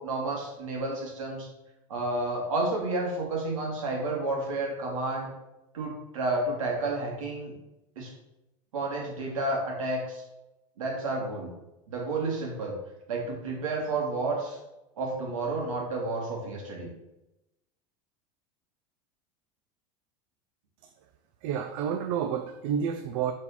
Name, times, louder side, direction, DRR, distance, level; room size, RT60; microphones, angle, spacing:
voice 1, 0.0-1.5 1.9-5.3 5.7-7.5 8.0-8.1 8.7-10.2 10.8-11.5 11.9-12.7 13.1-14.6 15.0-16.9, right 2 dB, 90° right, -1 dB, 2.1 m, -31 dB
voice 2, 21.4-23.3, right 8 dB, 65° right, 7 dB, 0.6 m, -29 dB
4.8 x 4.2 x 5.7 m, 0.94 s
hypercardioid pair, 100°, 17 cm